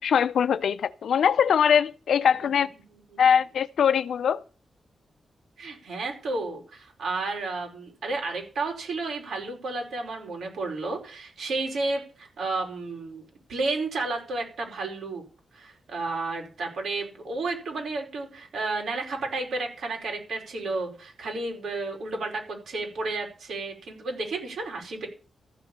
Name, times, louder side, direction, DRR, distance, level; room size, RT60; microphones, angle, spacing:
voice 1, 0.0-2.7 3.2-4.4, left 7 dB, 75° left, 0.6 m, -22 dB
voice 2, 5.6-15.2 15.5-25.1, right 3 dB, 75° right, 5.0 m, -32 dB
14.0 x 6.7 x 8.6 m
wide cardioid pair, 175°, 0 cm